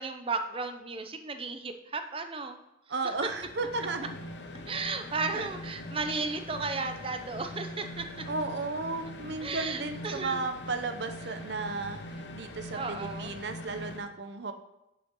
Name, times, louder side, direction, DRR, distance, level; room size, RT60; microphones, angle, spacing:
voice 1, 0.0-2.6 3.0-3.3 4.7-8.2 9.4-10.5 12.7-13.3, right 4 dB, 30° right, 7 dB, 0.7 m, -34 dB
voice 2, 2.9-4.1 5.3-5.4 8.3-14.5, right 3 dB, 65° right, 8 dB, 0.8 m, -34 dB
sound 1, 3.1-14.0, left 1 dB, 75° left, 0.9 m, -42 dB
10.5 x 5.8 x 3.8 m, 0.91 s
head